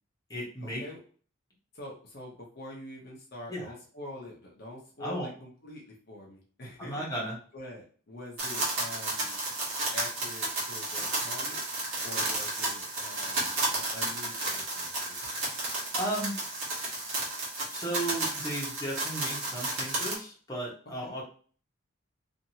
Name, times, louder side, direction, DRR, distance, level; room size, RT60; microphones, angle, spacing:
voice 1, 0.3-0.8 3.5-3.7 5.0-5.3 6.8-7.4 15.9-16.4 17.7-21.2, right 1 dB, 20° left, -4 dB, 0.8 m, -35 dB
voice 2, 1.7-7.0 7.5-9.4 9.9-11.6 12.0-15.3 21.0-21.2, left 1 dB, 50° left, -2 dB, 0.6 m, -45 dB
sound 1, 8.4-20.2, right 2 dB, 70° right, 1.2 m, -32 dB
2.8 x 2.5 x 2.7 m, 0.42 s
head